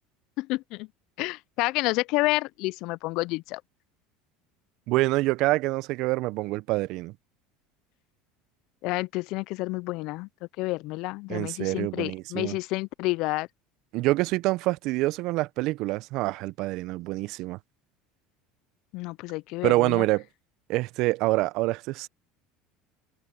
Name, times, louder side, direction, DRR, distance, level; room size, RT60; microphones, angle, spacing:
voice 1, 0.4-0.9 1.2-3.6 8.8-10.3 10.6-13.5 18.9-20.1, left 22 dB, 60° left, 0.6 m, -29 dB
voice 2, 4.9-7.1 11.3-12.6 13.9-17.6 19.6-20.2 20.7-22.1, right 20 dB, 60° right, 1.2 m, -26 dB
hypercardioid pair, 75°, 0 cm